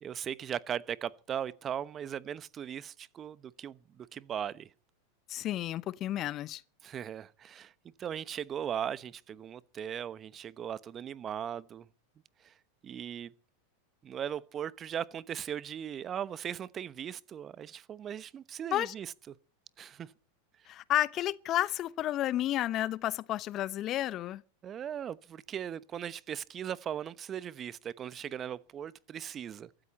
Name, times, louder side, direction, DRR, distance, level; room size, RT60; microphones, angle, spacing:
voice 1, 0.0-4.7 6.8-7.7 8.0-11.8 12.8-13.3 14.0-19.1 19.8-20.1 24.6-29.7, right 9 dB, 30° right, 1.0 m, -38 dB
voice 2, 5.3-6.6 18.7-18.9 20.7-24.4, left 13 dB, 40° left, 0.8 m, -31 dB
24.0 x 13.0 x 4.3 m
hypercardioid pair, 90°, 0 cm